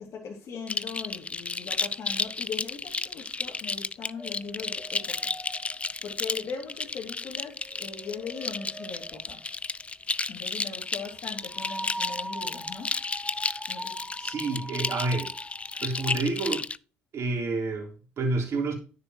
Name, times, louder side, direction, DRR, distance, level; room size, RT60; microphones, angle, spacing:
voice 1, 0.0-5.3 6.0-9.4 10.3-13.0 13.7-14.0, left 5 dB, 55° left, 2.4 m, -39 dB
sound 1, 0.7-16.8, left 4 dB, 20° left, 0.4 m, -33 dB
sound 2, 4.2-7.1 7.4-9.9 11.4-16.2, right 1 dB, ahead, 1.4 m, -42 dB
voice 2, 14.2-15.3 15.8-16.6 17.1-18.7, right 3 dB, 50° right, 3.3 m, -29 dB
10.0 x 6.7 x 3.0 m
hypercardioid pair, 60°, 6 cm